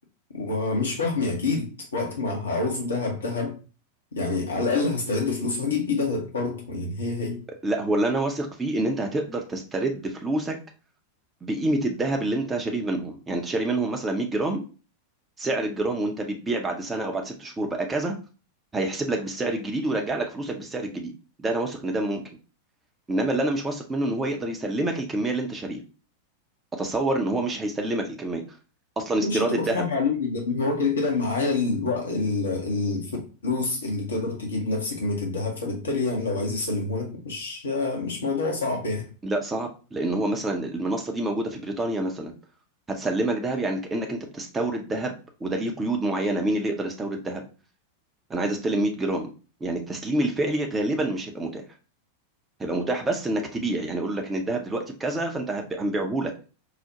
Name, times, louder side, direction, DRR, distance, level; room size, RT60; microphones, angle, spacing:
voice 1, 0.3-3.6 4.1-7.4 29.2-33.2 33.4-39.1, left 3 dB, 70° left, 0.7 m, -27 dB
voice 2, 7.6-10.6 11.4-14.6 15.4-18.1 18.7-21.1 21.4-22.2 23.1-25.8 26.8-28.4 29.0-29.8 39.2-42.3 42.9-45.1 45.4-47.5 48.3-49.3 49.6-51.6 52.6-56.3, right 2 dB, 15° right, 0.5 m, -27 dB
4.8 x 2.1 x 2.8 m
figure-of-eight pair, 90°, 0 cm